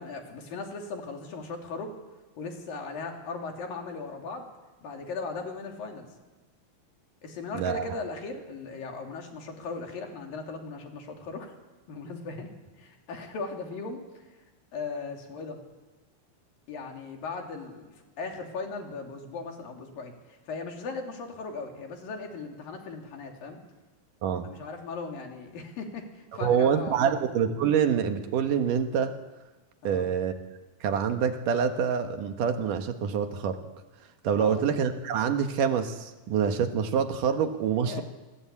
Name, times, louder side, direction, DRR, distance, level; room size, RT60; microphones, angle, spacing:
voice 1, 0.0-1.9 2.4-4.5 4.8-6.1 7.2-11.5 11.9-14.4 14.7-15.6 16.7-23.6 24.4-27.2 29.8-30.1 34.4-34.6 37.8-38.0, left 4 dB, 75° left, 2 dB, 4.9 m, -38 dB
voice 2, 26.4-29.2 29.8-30.3 30.8-33.6 34.2-38.0, right 7 dB, 70° right, 7 dB, 2.9 m, -26 dB
27.0 x 22.0 x 8.5 m, 1.2 s
omnidirectional pair, 4.1 m